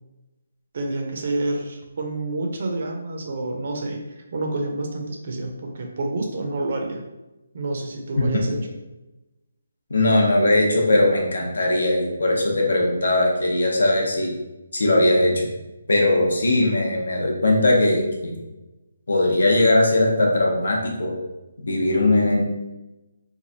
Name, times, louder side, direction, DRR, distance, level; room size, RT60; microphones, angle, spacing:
voice 1, 0.7-4.0 4.3-7.0 7.5-8.6, right 2 dB, 35° right, 2 dB, 0.4 m, -28 dB
voice 2, 9.9-14.3 14.7-15.5 15.9-18.4 19.1-21.1 21.6-22.4, left 1 dB, 70° left, 0 dB, 0.9 m, -19 dB
3.1 x 2.3 x 3.9 m, 1.0 s
hypercardioid pair, 180°, 0 cm